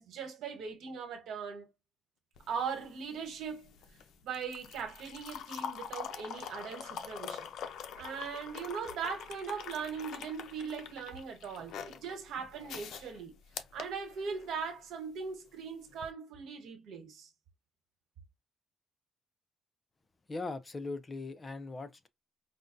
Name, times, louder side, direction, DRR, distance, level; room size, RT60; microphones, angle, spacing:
voice 1, 0.0-1.7 2.5-3.7 4.2-7.5 7.9-13.3 13.7-17.3, right 6 dB, 80° right, 1.2 m, -39 dB
sound 1, 2.4-14.7 15.9-16.1, left 8 dB, 75° left, 0.6 m, -45 dB
voice 2, 20.3-22.1, left 3 dB, 30° left, 0.5 m, -39 dB
5.0 x 2.2 x 2.6 m
cardioid pair, 90°, 0 cm